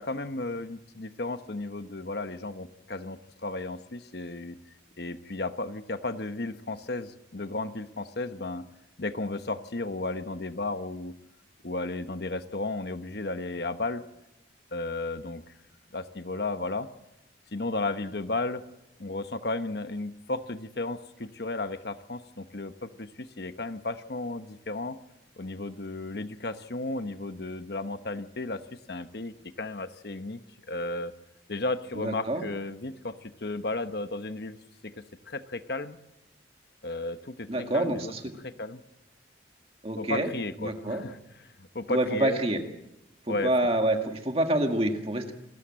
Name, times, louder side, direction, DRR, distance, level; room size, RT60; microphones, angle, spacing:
voice 1, 0.0-4.6 5.0-8.7 9.0-11.2 11.6-14.0 14.7-15.4 15.9-16.9 17.5-18.6 19.0-25.0 25.4-28.6 28.9-30.4 30.7-31.1 31.5-34.6 34.8-36.0 36.8-38.1 38.4-38.8 40.0-41.2 41.4-42.4 43.3-43.5, left 2 dB, 60° left, 10 dB, 1.0 m, -34 dB
voice 2, 31.9-32.5 37.5-38.3 39.8-40.3 40.6-41.0 41.9-42.6 43.3-45.3, right 1 dB, 30° right, 5 dB, 2.0 m, -27 dB
27.5 x 13.0 x 7.6 m, 0.91 s
head